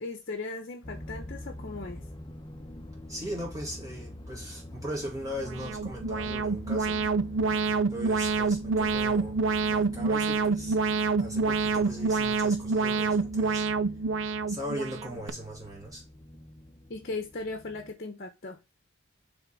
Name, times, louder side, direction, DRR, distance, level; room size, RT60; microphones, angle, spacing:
voice 1, 0.0-2.0 16.9-18.6, left 3 dB, 50° left, 1.0 m, -37 dB
sound 1, 0.8-17.9, left 1 dB, 20° left, 0.8 m, -45 dB
voice 2, 3.1-7.0 7.9-9.4 9.7-10.8 11.2-13.7 14.5-16.0, equal, 20° right, 2.5 m, -38 dB
Alarm, 5.4-15.3, right 4 dB, 70° right, 0.5 m, -27 dB
5.7 x 3.6 x 5.7 m
head